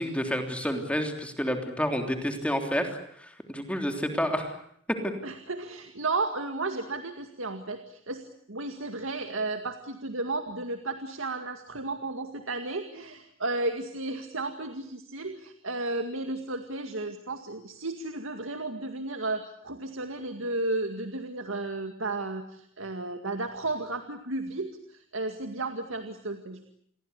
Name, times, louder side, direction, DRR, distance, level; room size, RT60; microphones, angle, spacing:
voice 1, 0.0-4.5 5.0-5.1, equal, 5° left, 5 dB, 3.3 m, -29 dB
voice 2, 5.2-26.6, right 2 dB, 70° right, 7 dB, 2.1 m, -33 dB
29.0 x 22.0 x 8.2 m, 0.69 s
head